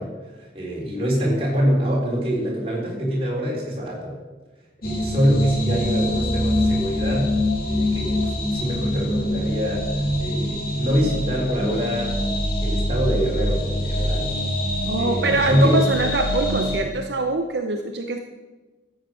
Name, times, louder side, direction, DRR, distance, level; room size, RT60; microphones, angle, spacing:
voice 1, 0.0-4.2 4.8-7.3 7.6-9.9 10.2-12.2 12.6-14.3 15.0-15.8, equal, 30° right, -3 dB, 4.0 m, -24 dB
sound 1, 4.8-16.8, left 1 dB, 50° left, 2.6 m, -24 dB
voice 2, 14.9-18.2, right 2 dB, 65° right, 4 dB, 0.8 m, -23 dB
13.0 x 8.1 x 6.2 m, 1.2 s
head